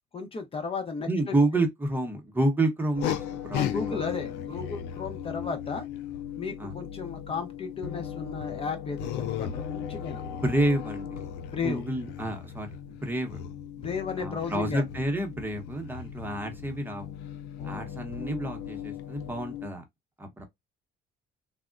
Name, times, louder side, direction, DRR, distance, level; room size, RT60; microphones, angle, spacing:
voice 1, 0.1-1.3 3.5-5.8 6.4-10.2 11.5-11.8 13.8-14.8 17.6-17.9, left 5 dB, 35° left, 0.7 m, -34 dB
voice 2, 1.1-4.1 6.6-6.7 10.2-11.2 11.6-13.4 14.2-17.1 17.6-19.8 20.2-20.4, right 1 dB, 10° right, 0.8 m, -29 dB
sound 1, 2.9-19.7, left 9 dB, 90° left, 0.5 m, -36 dB
3.5 x 2.1 x 2.4 m
cardioid pair, 110°, 17 cm